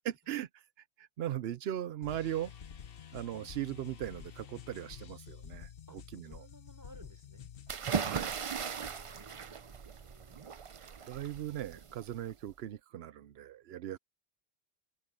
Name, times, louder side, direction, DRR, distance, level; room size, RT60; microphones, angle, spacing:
voice 1, 0.0-0.6 1.0-2.5 3.1-6.5 8.0-8.4 11.0-14.0, right 12 dB, 75° right, 0.8 m, -39 dB
sound 1, 2.0-7.7, left 8 dB, 60° left, 1.0 m, -49 dB
voice 2, 5.9-7.5 8.7-10.4, right 1 dB, 15° right, 3.7 m, -58 dB
sound 2, 7.7-12.5, right 6 dB, 40° right, 0.5 m, -38 dB
omnidirectional pair, 1.1 m